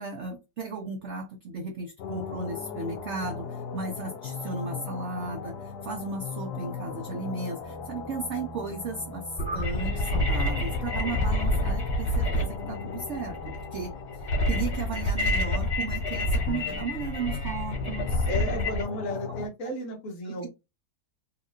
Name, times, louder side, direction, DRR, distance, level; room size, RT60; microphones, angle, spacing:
voice 1, 0.0-18.3 20.2-20.5, right 4 dB, 60° right, 0.8 m, -35 dB
sound 1, 2.0-19.5, left 5 dB, 80° left, 1.2 m, -38 dB
sound 2, 9.4-18.8, left 1 dB, 25° left, 1.9 m, -28 dB
voice 2, 18.3-20.5, left 1 dB, 60° left, 1.3 m, -34 dB
4.1 x 2.5 x 2.6 m
omnidirectional pair, 1.7 m